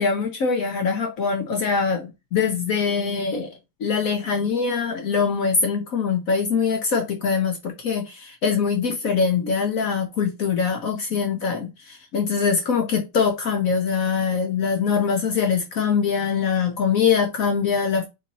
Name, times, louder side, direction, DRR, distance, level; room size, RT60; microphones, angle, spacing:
voice 1, 0.0-3.5 3.8-18.1, left 5 dB, 60° left, 1.0 m, -23 dB
3.7 x 2.7 x 4.0 m
omnidirectional pair, 1.8 m